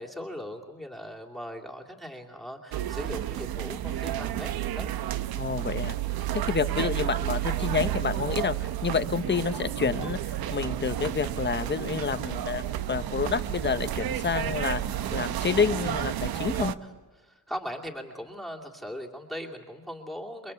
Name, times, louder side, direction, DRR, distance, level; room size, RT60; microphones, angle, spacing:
voice 1, 0.0-4.9 16.8-16.9 17.2-20.5, equal, ahead, -1 dB, 2.7 m, -39 dB
sound 1, 2.7-16.7, right 12 dB, 85° right, 1.1 m, -31 dB
voice 2, 5.4-6.0 6.3-8.6 8.8-12.6 12.9-14.8 15.1-16.7, left 5 dB, 30° left, 10 dB, 1.1 m, -28 dB
29.5 x 22.5 x 8.3 m, 1.2 s
cardioid pair, 135°, 36 cm